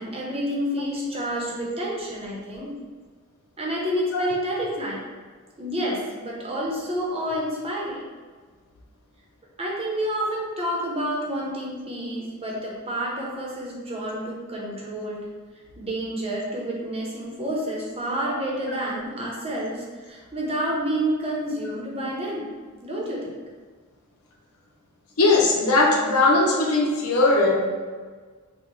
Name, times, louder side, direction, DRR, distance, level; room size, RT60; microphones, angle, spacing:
voice 1, 0.0-2.7 3.6-5.0 5.6-8.0 9.6-15.3 15.8-22.5 22.8-23.4, equal, 25° right, -3 dB, 0.9 m, -29 dB
voice 2, 25.2-27.6, left 2 dB, 85° left, -1 dB, 0.8 m, -19 dB
5.8 x 2.3 x 3.2 m, 1.5 s
head